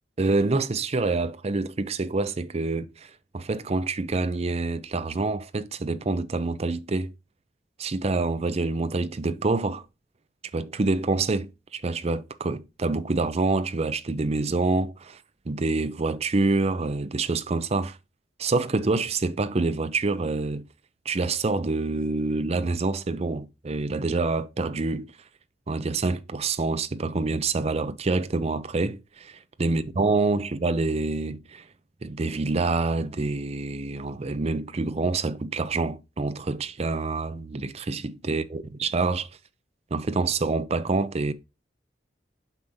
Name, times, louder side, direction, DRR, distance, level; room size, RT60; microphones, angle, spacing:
voice 1, 0.2-7.1 7.8-9.8 10.5-15.2 15.5-18.0 18.4-20.7 21.1-25.1 25.7-31.7 32.0-39.3 39.9-41.3, right 3 dB, 35° right, 0.5 m, -26 dB
8.1 x 5.6 x 2.7 m
head